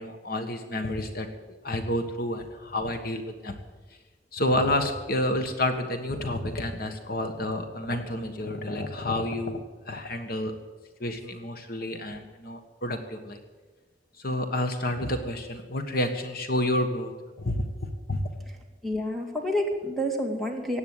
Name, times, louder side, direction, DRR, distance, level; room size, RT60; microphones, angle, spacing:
voice 1, 0.0-3.5 4.3-9.6 9.8-10.5 11.0-13.4 14.2-17.1 17.4-17.6 18.1-18.2, left 1 dB, 55° left, 7 dB, 1.5 m, -29 dB
voice 2, 18.8-20.8, equal, ahead, 2 dB, 2.2 m, -28 dB
16.0 x 9.4 x 8.2 m, 1.4 s
head